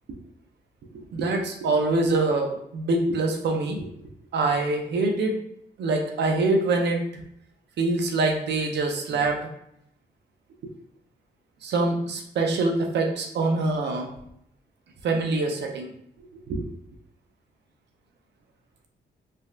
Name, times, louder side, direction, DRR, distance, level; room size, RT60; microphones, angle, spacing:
voice 1, 0.9-3.9 4.3-5.4 5.8-7.0 7.8-9.5 11.6-14.1 15.0-15.9 16.5-16.7, right 2 dB, 75° right, 2 dB, 0.6 m, -24 dB
3.2 x 2.6 x 2.3 m, 0.73 s
cardioid pair, 75°, 18 cm